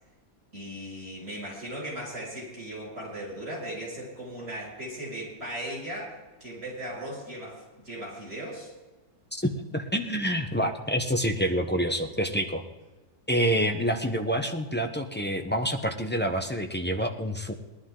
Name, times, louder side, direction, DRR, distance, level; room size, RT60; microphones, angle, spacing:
voice 1, 0.5-8.7, right 1 dB, 45° right, -3 dB, 6.6 m, -37 dB
voice 2, 9.3-12.6 13.3-17.5, equal, 10° left, 4 dB, 0.5 m, -27 dB
19.5 x 11.5 x 3.8 m, 1.2 s
omnidirectional pair, 1.8 m